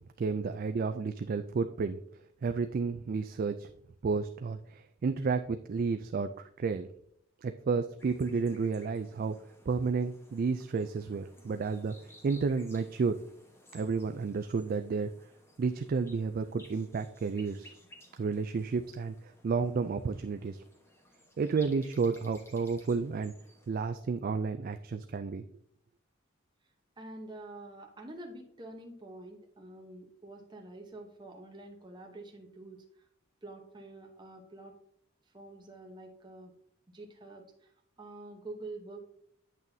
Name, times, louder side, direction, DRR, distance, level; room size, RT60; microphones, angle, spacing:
voice 1, 0.2-2.0 2.4-3.7 4.0-6.9 7.4-9.3 9.7-11.9 12.2-13.2 13.7-15.1 15.6-17.7 18.2-20.6 21.4-23.3 23.7-25.4, right 4 dB, 45° right, 8 dB, 0.3 m, -31 dB
sound 1, 8.0-23.7, left 1 dB, 10° left, 1.1 m, -59 dB
voice 2, 27.0-33.1 33.4-34.7 35.3-36.5 36.9-39.1, right 2 dB, 20° right, 2 dB, 0.9 m, -47 dB
8.8 x 6.2 x 2.7 m, 0.70 s
head